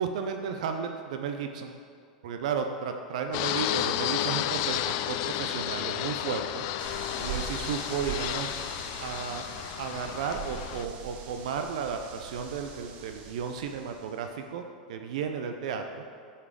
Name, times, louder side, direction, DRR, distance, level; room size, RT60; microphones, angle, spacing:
voice 1, 0.0-1.7 2.2-6.7 7.2-8.5 9.0-9.5 9.8-16.0, right 6 dB, 65° right, 6 dB, 0.5 m, -33 dB
Fixed-wing aircraft airplane, 3.3-10.9, left 12 dB, 55° left, 0.4 m, -32 dB
sound 1, 6.8-14.3, right 7 dB, 40° right, 1.0 m, -42 dB
8.1 x 5.7 x 4.8 m, 2.3 s
hypercardioid pair, 90°, 4 cm